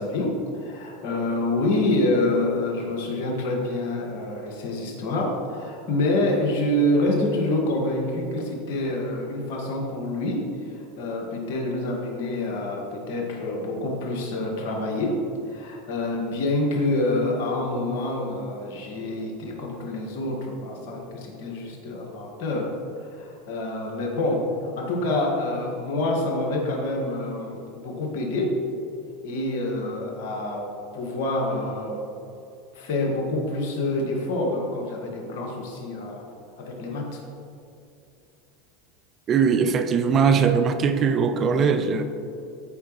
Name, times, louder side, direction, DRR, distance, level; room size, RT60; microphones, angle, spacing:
voice 1, 0.0-22.7 23.0-28.6 29.2-30.7 30.9-32.1 32.7-36.2 36.6-37.2, left 1 dB, 70° left, 1.9 m, -27 dB
voice 2, 39.3-42.0, right 6 dB, 40° right, 0.7 m, -20 dB
13.0 x 4.9 x 3.2 m
hypercardioid pair, 95°, 0 cm